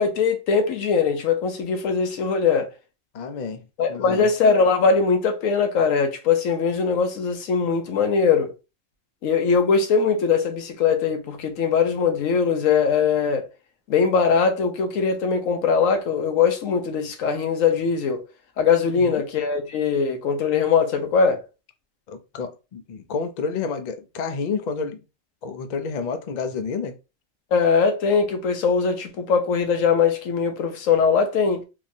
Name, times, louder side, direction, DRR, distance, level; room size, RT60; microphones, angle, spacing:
voice 1, 0.0-2.7 3.8-8.5 9.2-13.5 13.9-18.2 18.6-21.4 27.5-31.6, left 5 dB, 85° left, 1.1 m, -21 dB
voice 2, 3.1-3.6 3.9-4.3 18.9-19.2 22.1-25.0 25.4-27.0, left 5 dB, 55° left, 0.5 m, -29 dB
3.7 x 2.9 x 2.6 m
omnidirectional pair, 1.3 m